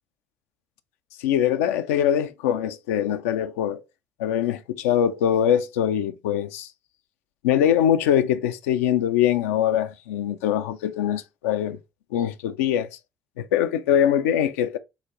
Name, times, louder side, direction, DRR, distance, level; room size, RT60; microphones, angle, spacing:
voice 1, 1.2-3.8 4.2-6.7 7.4-11.8 12.1-13.0 13.4-14.8, left 10 dB, 75° left, 0.4 m, -23 dB
6.9 x 2.5 x 2.9 m
figure-of-eight pair, 45°, 8 cm